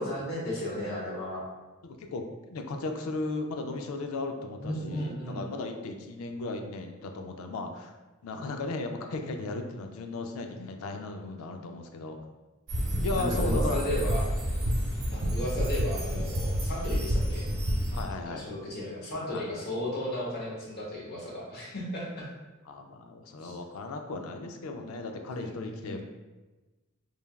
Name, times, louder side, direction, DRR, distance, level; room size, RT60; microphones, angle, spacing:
voice 1, 0.0-1.5 4.6-5.5 13.1-14.2 15.1-17.5 18.3-22.3 23.4-23.6 25.2-26.0, left 1 dB, 50° left, -4 dB, 0.8 m, -34 dB
voice 2, 1.8-8.0 8.2-12.2 13.0-14.0 17.9-18.4 19.3-19.5 22.7-26.0, left 3 dB, 85° left, 5 dB, 0.4 m, -36 dB
sound 1, 12.7-18.0, equal, 80° right, 0.9 m, -29 dB
3.2 x 2.3 x 2.2 m, 1.2 s
head